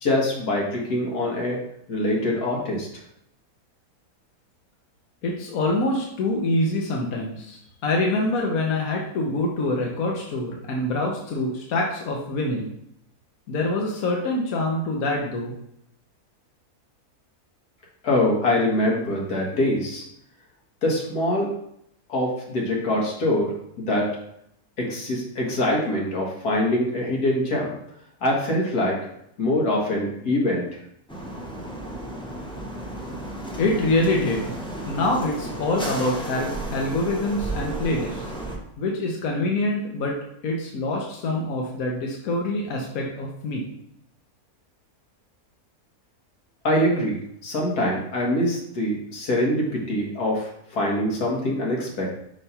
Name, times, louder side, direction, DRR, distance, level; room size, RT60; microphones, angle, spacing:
voice 1, 0.0-1.6 1.9-2.9 18.0-20.0 20.8-21.5 22.1-24.1 24.8-27.7 28.2-29.0 29.4-30.7 46.6-52.1, left 1 dB, 90° left, -2 dB, 1.9 m, -24 dB
voice 2, 5.2-12.7 13.5-15.5 33.6-34.4 34.9-38.2 38.8-40.2 40.4-43.6, left 2 dB, 70° left, -1 dB, 1.3 m, -25 dB
sound 1, 31.1-38.6, right 1 dB, 5° left, 0.6 m, -33 dB
5.5 x 3.1 x 5.5 m, 0.74 s
omnidirectional pair, 1.6 m